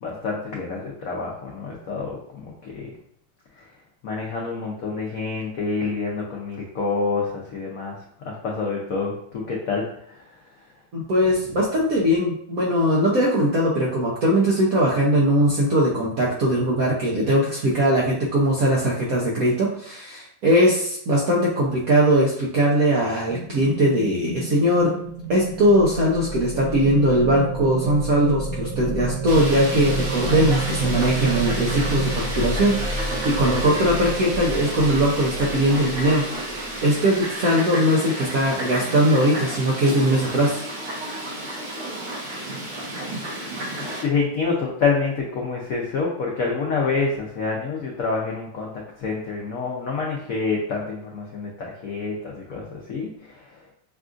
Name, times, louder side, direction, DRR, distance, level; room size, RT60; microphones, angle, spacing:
voice 1, 0.0-2.9 3.6-3.7 4.0-8.0 8.2-10.3 43.2-43.4 44.0-53.5, left 4 dB, 80° left, -2 dB, 0.7 m, -27 dB
voice 2, 10.9-24.9 25.3-36.2 36.5-40.7, equal, 70° right, -4 dB, 0.8 m, -20 dB
sound 1, 23.2-32.2, equal, 50° left, 1.4 m, -35 dB
sound 2, 25.0-37.1, right 2 dB, 20° right, 0.8 m, -30 dB
Fowl, 29.3-44.0, right 1 dB, 55° right, 1.4 m, -31 dB
6.5 x 2.4 x 2.5 m, 0.68 s
omnidirectional pair, 2.3 m